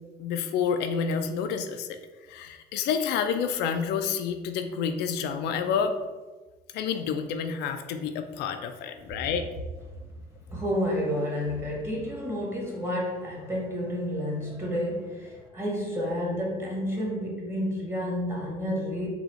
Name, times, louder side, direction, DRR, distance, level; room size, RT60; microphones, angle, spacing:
voice 1, 0.2-1.9 2.3-5.9 6.7-9.5, left 6 dB, 85° left, 7 dB, 0.4 m, -29 dB
voice 2, 10.5-19.1, equal, 15° right, -2 dB, 1.2 m, -30 dB
4.0 x 2.3 x 4.2 m, 1.2 s
cardioid pair, 110°, 17 cm